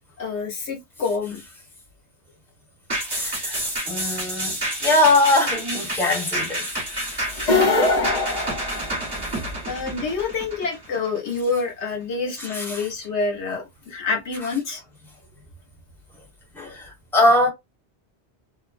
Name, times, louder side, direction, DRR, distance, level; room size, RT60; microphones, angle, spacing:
voice 1, 0.2-1.4 7.4-8.5 9.7-14.8, left 4 dB, 85° left, 1.3 m, -28 dB
sound 1, 2.9-11.6 12.0-12.1, right 1 dB, 20° right, 1.2 m, -29 dB
voice 2, 3.0-6.7 7.1-7.5 9.3-9.4 12.4-12.8 16.5-17.5, left 2 dB, ahead, 1.1 m, -22 dB
sound 2, 7.3-9.4, left 3 dB, 45° left, 0.9 m, -21 dB
2.9 x 2.1 x 2.4 m
omnidirectional pair, 1.1 m